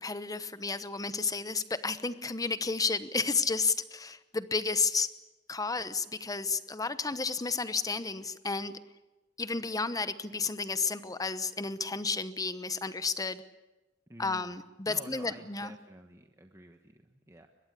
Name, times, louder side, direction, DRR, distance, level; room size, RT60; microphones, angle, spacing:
voice 1, 0.0-5.1 5.5-8.7 9.4-13.4 14.2-15.7, left 4 dB, 20° left, 13 dB, 1.0 m, -32 dB
voice 2, 14.1-14.5 14.9-17.5, right 1 dB, 15° right, 4 dB, 1.3 m, -50 dB
23.5 x 21.0 x 8.3 m, 1.1 s
head